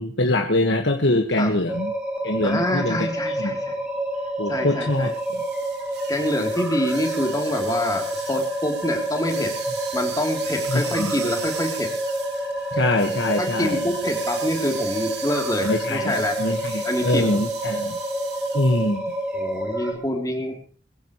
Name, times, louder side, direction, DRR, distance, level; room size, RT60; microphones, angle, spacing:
voice 1, 0.0-1.9 2.2-3.1 3.4-3.5 4.4-5.4 10.7-11.1 12.7-13.8 15.6-18.0 18.5-19.1, left 1 dB, 75° left, 3 dB, 1.5 m, -23 dB
sound 1, 1.7-19.9, right 1 dB, 5° right, 3.3 m, -28 dB
voice 2, 2.4-3.8 4.5-5.1 6.1-9.5 9.9-11.9 13.4-16.4 16.8-17.3 19.3-20.6, left 1 dB, 20° left, 3 dB, 3.1 m, -26 dB
sound 2, 5.0-18.9, right 8 dB, 60° right, 2.9 m, -38 dB
22.0 x 15.5 x 3.1 m, 0.40 s
head